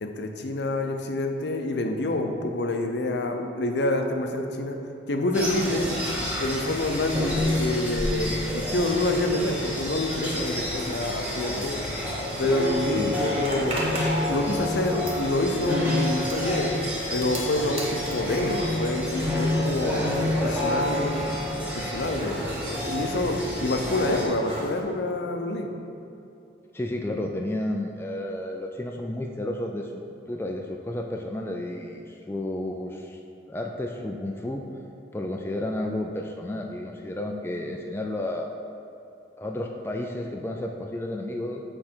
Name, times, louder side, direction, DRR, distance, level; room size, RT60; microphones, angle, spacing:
voice 1, 0.0-4.8 5.1-5.9 6.4-11.8 12.4-13.8 14.3-16.7 17.1-20.1 20.4-22.4 22.6-25.7, left 2 dB, 70° left, 4 dB, 0.6 m, -27 dB
sound 1, 5.3-24.3, left 1 dB, 10° right, 1.3 m, -28 dB
Zipper (clothing), 13.4-19.6 19.9-24.8, right 1 dB, 30° right, 1.1 m, -38 dB
voice 2, 26.7-33.2 33.5-34.6 35.1-38.5 39.4-41.6, left 1 dB, 15° left, 1 dB, 0.3 m, -32 dB
7.5 x 4.8 x 4.4 m, 2.7 s
head